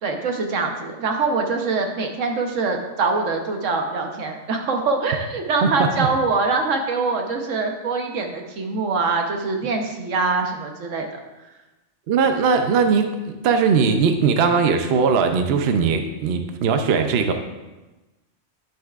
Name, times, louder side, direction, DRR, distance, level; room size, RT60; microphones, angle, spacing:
voice 1, 0.0-11.1, right 4 dB, 90° right, 3 dB, 1.3 m, -24 dB
voice 2, 5.6-6.1 12.1-13.0 13.4-17.3, right 5 dB, 60° right, 6 dB, 0.8 m, -19 dB
9.4 x 8.0 x 2.4 m, 1.1 s
omnidirectional pair, 1.3 m